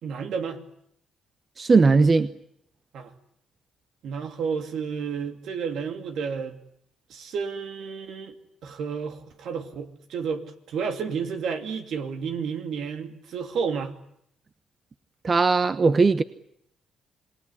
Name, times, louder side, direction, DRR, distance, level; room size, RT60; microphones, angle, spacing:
voice 1, 0.0-0.6 2.9-3.1 4.0-6.6 7.1-8.3 8.6-13.9, right 6 dB, 70° right, 7 dB, 2.7 m, -31 dB
voice 2, 1.6-2.3 15.2-16.2, right 4 dB, 35° right, 12 dB, 1.0 m, -18 dB
27.5 x 20.0 x 9.9 m, 0.73 s
cardioid pair, 90°, 0 cm